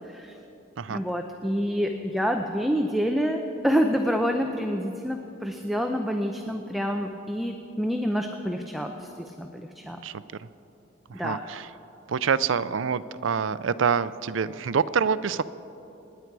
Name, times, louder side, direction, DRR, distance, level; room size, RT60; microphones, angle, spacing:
voice 1, 0.9-9.5 9.8-10.0 11.1-11.4, equal, ahead, 3 dB, 0.6 m, -27 dB
voice 2, 10.0-10.5 11.1-11.7 12.1-15.4, right 6 dB, 80° right, 15 dB, 0.5 m, -26 dB
26.5 x 10.5 x 4.7 m, 2.9 s
head